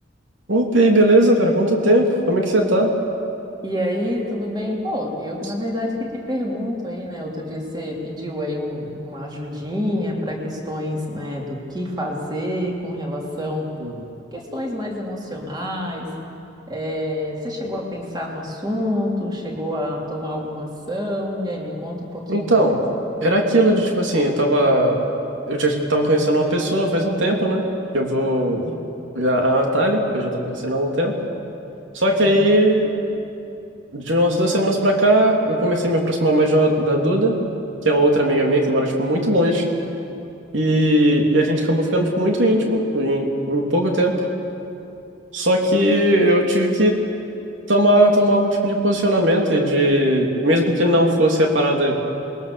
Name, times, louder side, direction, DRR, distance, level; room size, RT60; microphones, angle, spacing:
voice 1, 0.5-2.9 13.8-13.9 22.3-22.8 23.2-25.0 25.5-27.6 27.9-28.6 29.1-31.1 31.9-32.9 33.9-37.4 37.8-39.6 40.5-44.2 45.3-47.0 47.7-52.0, right 1 dB, 75° right, 1 dB, 3.2 m, -18 dB
voice 2, 3.6-5.9 6.3-13.7 14.3-16.1 16.7-22.8 28.5-28.8 32.1-32.4, left 1 dB, 20° right, -2 dB, 3.5 m, -27 dB
27.5 x 22.0 x 7.1 m, 2.7 s
head